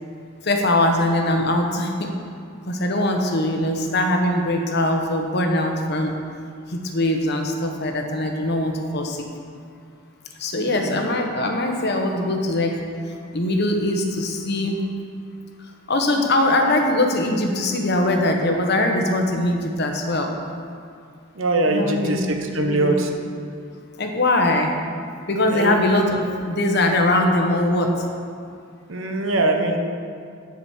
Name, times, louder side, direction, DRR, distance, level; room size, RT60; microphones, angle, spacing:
voice 1, 0.4-2.1 2.7-6.1 6.7-9.2 10.4-12.7 13.3-14.8 15.9-20.3 21.7-22.2 22.7-22.9 24.0-24.7 25.3-28.0, left 1 dB, 55° left, 3 dB, 1.1 m, -21 dB
voice 2, 10.7-11.0 21.4-23.1 25.5-25.8 28.9-29.8, right 2 dB, 75° right, 4 dB, 1.0 m, -22 dB
10.0 x 5.1 x 7.2 m, 2.3 s
head